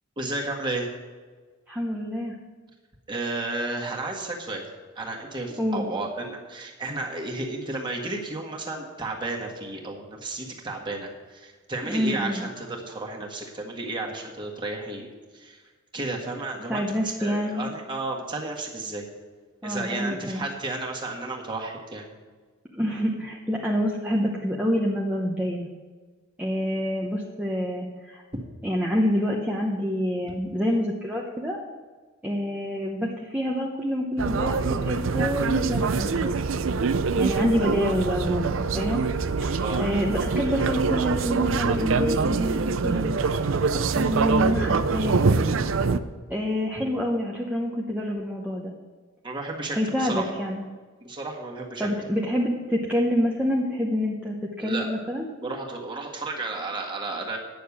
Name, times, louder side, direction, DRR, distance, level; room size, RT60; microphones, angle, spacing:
voice 1, 0.2-0.9 3.1-4.6 4.9-15.1 15.3-15.6 15.9-19.0 19.6-22.1 39.6-39.8 49.2-50.3 51.0-51.9 54.6-54.9 55.4-57.4, right 2 dB, 25° right, -1 dB, 1.7 m, -32 dB
voice 2, 1.7-2.3 5.6-5.9 11.8-12.4 16.7-17.7 19.6-20.4 22.7-25.7 26.4-28.2 28.6-31.6 32.2-36.4 37.2-39.0 39.4-43.5 44.0-45.2 46.3-48.7 49.7-50.6 51.8-55.3, equal, 10° right, -3 dB, 0.9 m, -27 dB
sound 1, 34.2-46.0, right 4 dB, 70° right, 0.5 m, -24 dB
9.4 x 6.7 x 8.5 m, 1.4 s
head